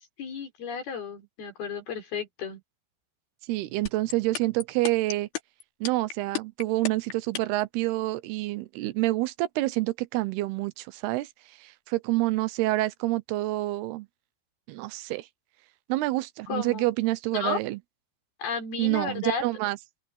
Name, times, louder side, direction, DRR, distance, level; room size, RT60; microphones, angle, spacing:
voice 1, 0.2-2.6 16.5-16.9 17.3-17.6 18.4-19.4, left 5 dB, 75° left, 7.0 m, -33 dB
voice 2, 3.5-5.3 5.8-11.3 11.6-14.1 14.7-15.3 15.9-17.8 18.8-19.8, right 18 dB, 85° right, 2.8 m, -27 dB
sound 1, 3.9-7.6, left 10 dB, 90° left, 4.5 m, -32 dB
open air
omnidirectional pair, 4.5 m